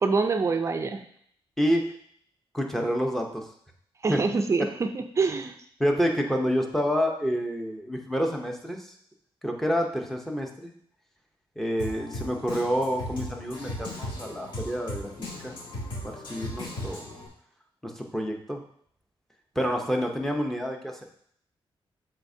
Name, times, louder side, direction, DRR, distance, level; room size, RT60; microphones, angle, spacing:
voice 1, 0.0-1.0 4.0-5.5, right 4 dB, 30° right, 6 dB, 0.5 m, -25 dB
voice 2, 1.6-1.9 2.5-3.5 4.1-4.2 5.8-8.9 9.4-10.7 11.6-15.5 16.0-17.0 17.8-18.6 19.6-21.0, equal, 5° left, 1 dB, 0.7 m, -28 dB
Drum kit, 11.8-17.3, left 1 dB, 55° left, 2.5 m, -37 dB
12.0 x 4.2 x 2.7 m, 0.64 s
wide cardioid pair, 180°, 10 cm